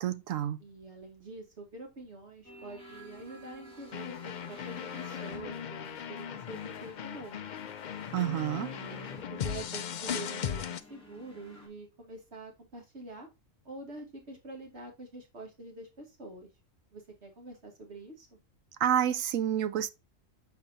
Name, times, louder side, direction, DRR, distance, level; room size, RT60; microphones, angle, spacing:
voice 1, 0.0-0.6 8.1-8.7 18.8-19.9, right 10 dB, 85° right, 1.0 m, -29 dB
voice 2, 0.6-7.5 8.7-13.3 13.6-16.5 16.9-18.4, right 2 dB, 55° right, 2.3 m, -46 dB
sound 1, 2.4-11.7, equal, 5° left, 2.2 m, -52 dB
sound 2, 3.9-10.8, left 8 dB, 65° left, 0.4 m, -38 dB
7.2 x 5.0 x 2.6 m
omnidirectional pair, 1.4 m